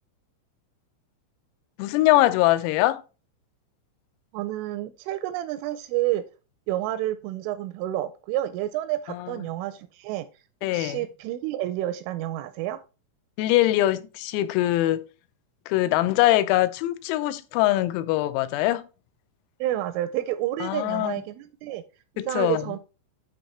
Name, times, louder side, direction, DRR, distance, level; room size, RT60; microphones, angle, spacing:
voice 1, 1.8-3.0 9.1-9.4 10.6-11.0 13.4-15.1 15.7-18.9 20.6-21.2 22.2-22.7, left 15 dB, 90° left, 3.4 m, -23 dB
voice 2, 4.3-6.2 6.7-10.3 10.7-12.8 19.6-21.8 22.2-22.8, right 14 dB, 85° right, 2.8 m, -29 dB
10.5 x 4.1 x 4.2 m
omnidirectional pair, 6.0 m